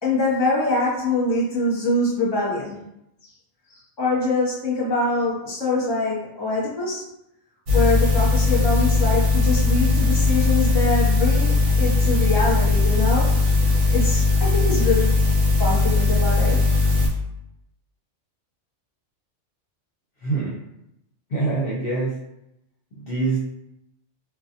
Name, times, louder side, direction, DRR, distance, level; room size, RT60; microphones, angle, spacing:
voice 1, 0.0-2.8 4.0-7.0 7.7-15.3 15.6-16.6, left 2 dB, 25° left, -7 dB, 0.8 m, -24 dB
sound 1, 7.7-17.1, left 3 dB, 75° right, 1.0 m, -19 dB
voice 2, 20.2-20.5 21.3-22.1 23.0-23.4, right 3 dB, 60° left, -7 dB, 0.8 m, -24 dB
2.5 x 2.2 x 2.5 m, 0.83 s
omnidirectional pair, 1.2 m